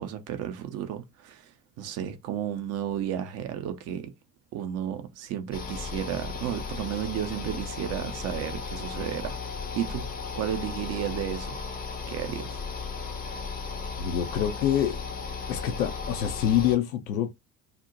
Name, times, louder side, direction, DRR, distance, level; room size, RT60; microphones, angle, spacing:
voice 1, 0.0-1.4 1.8-4.1 4.5-9.4 9.7-10.1 10.3-11.6 12.1-12.6, right 10 dB, 35° right, 0.4 m, -33 dB
sound 1, 5.5-16.8, left 5 dB, 20° left, 0.5 m, -35 dB
voice 2, 14.0-15.0 15.5-17.4, left 10 dB, 65° left, 0.6 m, -26 dB
2.8 x 2.1 x 2.4 m
figure-of-eight pair, 55°, 49 cm